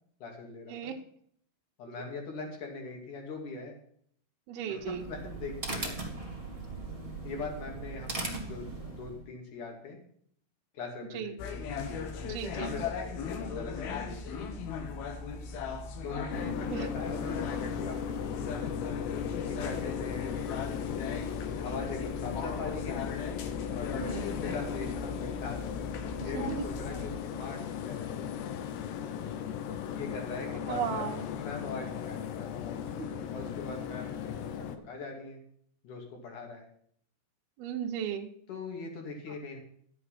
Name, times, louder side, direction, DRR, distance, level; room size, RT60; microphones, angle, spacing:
voice 1, 0.2-0.9 1.8-3.7 4.7-6.0 7.2-10.0 10.7-11.8 12.6-14.6 16.0-18.6 19.4-20.4 21.4-23.1 23.7-25.6 26.2-28.3 29.9-34.6 34.8-35.4 35.8-36.6 38.5-39.6, left 3 dB, 55° left, 2 dB, 3.7 m, -41 dB
voice 2, 4.5-5.0 11.1-11.3 12.2-12.7 16.4-16.9 23.9-24.4 26.3-26.7 30.7-31.2 37.6-38.3, right 8 dB, 75° right, 0 dB, 2.8 m, -35 dB
sound 1, 4.8-9.3, right 3 dB, 15° right, 1.3 m, -39 dB
sound 2, 11.4-27.1, left 5 dB, 70° left, 3.0 m, -39 dB
sound 3, 16.3-34.8, left 8 dB, 90° left, 3.1 m, -37 dB
12.0 x 7.7 x 5.8 m, 0.62 s
omnidirectional pair, 4.7 m